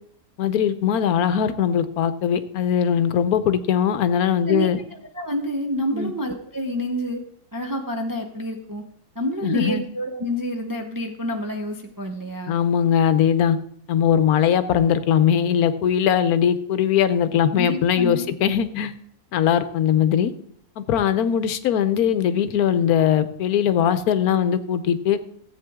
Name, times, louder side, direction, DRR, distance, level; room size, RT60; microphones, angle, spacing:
voice 1, 0.4-4.8 5.9-6.1 9.4-9.8 12.5-13.6 13.9-18.9 19.3-20.3 20.8-25.2, left 8 dB, 75° left, 12 dB, 1.2 m, -20 dB
voice 2, 5.1-7.2 7.5-8.8 9.1-12.5 17.6-18.3, equal, 20° right, 3 dB, 0.6 m, -28 dB
14.5 x 8.3 x 3.6 m, 0.65 s
omnidirectional pair, 1.6 m